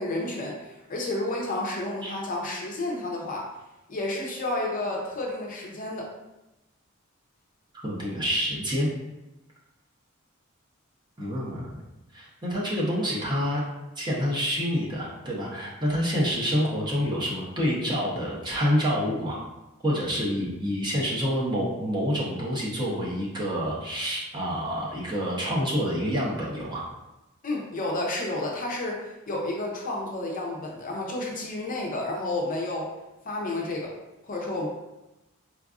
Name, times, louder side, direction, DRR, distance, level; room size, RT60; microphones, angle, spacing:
voice 1, 0.0-3.5 3.9-6.1 27.4-32.9 33.2-33.9 34.2-34.7, left 2 dB, 40° left, -2 dB, 0.6 m, -31 dB
voice 2, 7.8-8.9 11.2-11.8 12.1-13.6 14.0-19.4 19.8-26.8, equal, 20° right, -5 dB, 0.8 m, -27 dB
4.6 x 2.4 x 2.4 m, 0.99 s
head